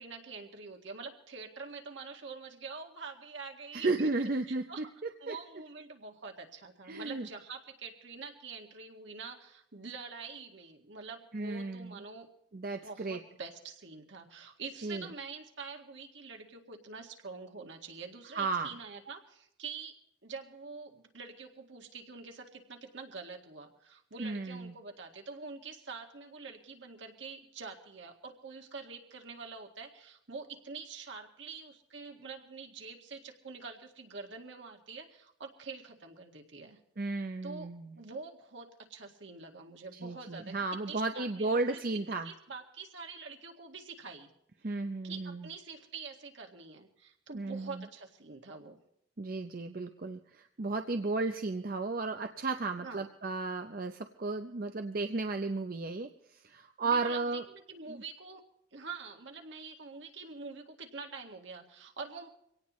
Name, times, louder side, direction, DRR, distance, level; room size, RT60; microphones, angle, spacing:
voice 1, 0.0-4.1 4.5-4.9 5.2-12.3 12.7-20.0 20.2-36.8 37.4-37.7 38.0-44.3 45.0-48.8 52.8-53.1 56.8-58.4 58.7-62.3, right 4 dB, 70° right, 2 dB, 2.0 m, -46 dB
voice 2, 3.7-4.8 5.3-5.4 6.9-7.3 11.3-12.0 12.5-13.2 14.8-15.1 18.3-18.7 24.2-24.7 37.0-38.0 40.0-42.3 44.6-45.5 47.3-47.8 49.2-57.4 57.9-58.0, right 3 dB, 45° right, 6 dB, 0.6 m, -34 dB
24.0 x 17.5 x 3.1 m, 0.76 s
head